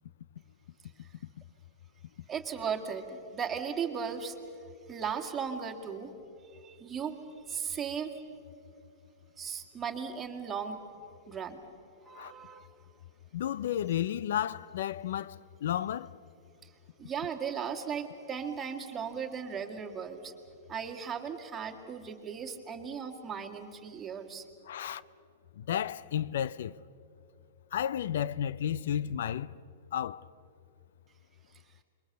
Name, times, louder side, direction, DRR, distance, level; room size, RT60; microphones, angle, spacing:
voice 1, 2.3-4.4 4.9-6.1 6.4-7.2 7.4-8.2 9.4-10.8 11.3-11.6 12.0-12.7 16.6-16.7 17.0-20.3 20.7-24.4, right 7 dB, 20° right, 2.2 m, -37 dB
voice 2, 13.3-16.2 24.7-25.0 25.6-26.8 27.7-29.5 29.9-30.3, left 10 dB, 70° left, 0.5 m, -32 dB
26.5 x 22.5 x 6.9 m
hypercardioid pair, 130°, 0 cm